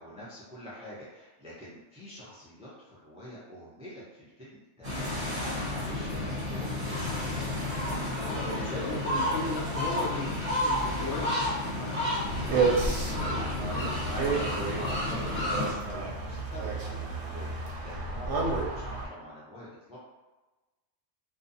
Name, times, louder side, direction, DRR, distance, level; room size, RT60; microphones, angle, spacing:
voice 1, 0.0-9.4 11.7-18.4 18.8-20.0, left 1 dB, 10° right, -8 dB, 0.4 m, -45 dB
sound 1, 4.8-15.7, left 1 dB, 30° right, 1.0 m, -31 dB
sound 2, 6.9-12.8, right 1 dB, 35° left, 1.1 m, -46 dB
voice 2, 8.1-11.5, left 3 dB, 70° left, -3 dB, 0.9 m, -37 dB
sound 3, 12.3-19.1, right 3 dB, 70° right, 0.8 m, -31 dB
2.6 x 2.2 x 2.6 m, 1.2 s
omnidirectional pair, 1.2 m